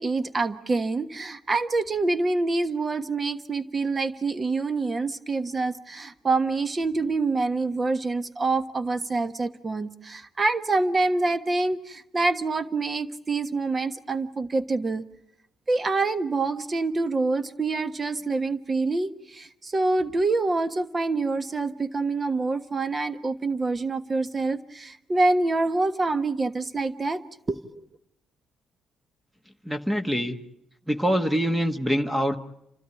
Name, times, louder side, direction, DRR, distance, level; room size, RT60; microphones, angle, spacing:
voice 1, 0.0-15.0 15.7-27.6, right 3 dB, 30° right, 11 dB, 1.3 m, -26 dB
voice 2, 29.6-30.4 30.9-32.3, equal, 10° right, 6 dB, 1.4 m, -24 dB
30.0 x 13.0 x 9.8 m, 0.81 s
cardioid pair, 90°, 0 cm